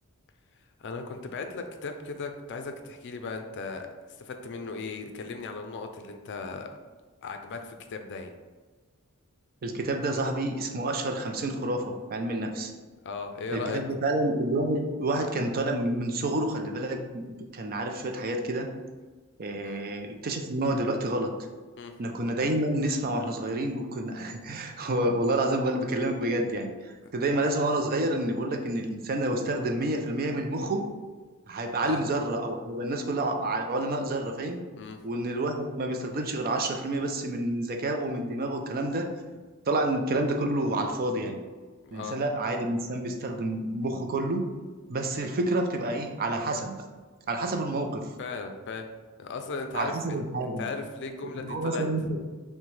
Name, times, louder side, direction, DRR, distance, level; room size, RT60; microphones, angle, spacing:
voice 1, 0.8-3.9 4.2-6.7 7.2-8.3 13.0-13.8 19.6-19.8 21.8-21.9 31.8-32.0 34.8-35.0 41.8-42.2 48.2-48.9 49.2-51.8, left 4 dB, 55° left, 6 dB, 0.4 m, -37 dB
voice 2, 9.6-12.7 13.5-18.7 19.4-21.3 22.0-30.8 31.5-34.6 35.0-39.1 39.7-41.4 41.9-44.4 44.9-46.8 47.3-48.1 49.7-50.7 51.2-52.2, right 1 dB, 45° right, 4 dB, 0.5 m, -29 dB
6.0 x 2.2 x 3.2 m, 1.4 s
head